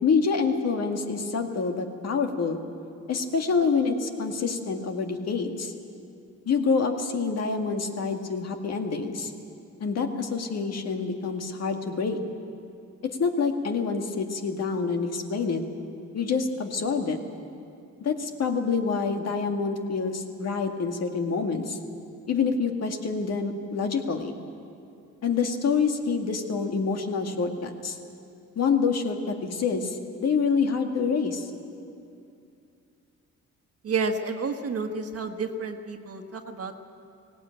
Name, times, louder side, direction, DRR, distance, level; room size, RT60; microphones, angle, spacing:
voice 1, 0.0-2.6 3.1-5.7 6.5-9.3 9.8-12.2 13.0-15.7 16.1-17.2 18.0-21.8 22.3-24.4 25.2-28.0 28.6-31.5, left 5 dB, 55° left, 4 dB, 2.0 m, -27 dB
voice 2, 33.8-36.7, right 4 dB, 50° right, 6 dB, 1.5 m, -30 dB
18.0 x 17.5 x 8.9 m, 2.6 s
cardioid pair, 90°, 30 cm